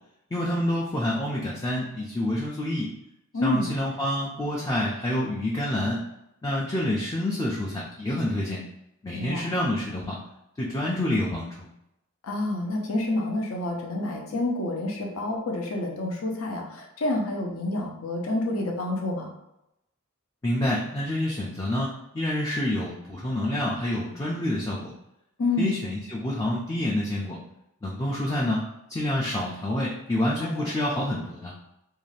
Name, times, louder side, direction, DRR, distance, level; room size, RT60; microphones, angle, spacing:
voice 1, 0.3-2.9 3.4-6.0 6.4-8.6 9.0-10.2 10.6-11.7 20.4-24.9 25.6-27.4 27.8-28.6 28.9-31.5, left 1 dB, 15° left, -4 dB, 0.4 m, -27 dB
voice 2, 3.3-3.7 9.1-9.4 12.2-19.3 25.4-25.7 30.4-30.7, left 2 dB, 75° left, 1 dB, 0.6 m, -28 dB
2.6 x 2.4 x 3.2 m, 0.85 s
head